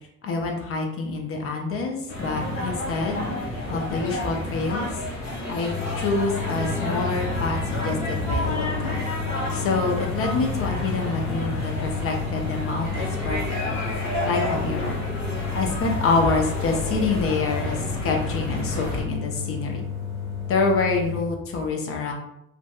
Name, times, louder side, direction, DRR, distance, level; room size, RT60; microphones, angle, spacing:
voice 1, 0.2-3.2 3.7-4.9 5.5-9.0 9.5-13.8 14.2-15.0 15.5-19.8 20.5-22.1, left 3 dB, 35° left, 2 dB, 0.6 m, -26 dB
sound 1, 2.1-19.0, left 1 dB, 75° left, 0.9 m, -30 dB
sound 2, 5.6-21.2, left 7 dB, 10° right, 0.9 m, -32 dB
2.6 x 2.1 x 2.4 m, 0.81 s
figure-of-eight pair, 60°, 40 cm